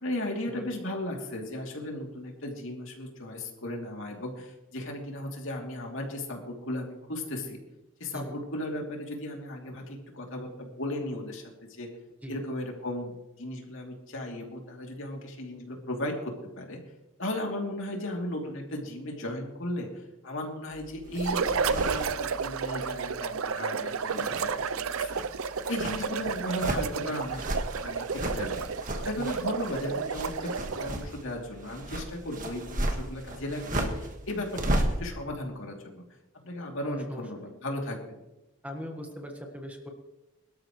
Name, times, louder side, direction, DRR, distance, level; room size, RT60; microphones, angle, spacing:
voice 1, 0.0-7.6 8.0-11.9 12.3-16.8 17.2-24.6 24.9-25.2 25.7-27.4 27.8-28.6 29.0-36.0 36.3-38.0, left 1 dB, 70° left, 1 dB, 2.9 m, -36 dB
sound 1, 20.7-23.5 23.9-35.0, right 1 dB, 40° right, 1.6 m, -35 dB
sound 2, 21.2-31.0, right 5 dB, 80° right, 0.6 m, -31 dB
voice 2, 24.3-24.6 29.2-29.3 36.8-37.2 38.6-39.9, equal, 5° right, 2 dB, 1.4 m, -41 dB
22.5 x 12.5 x 3.2 m, 0.97 s
head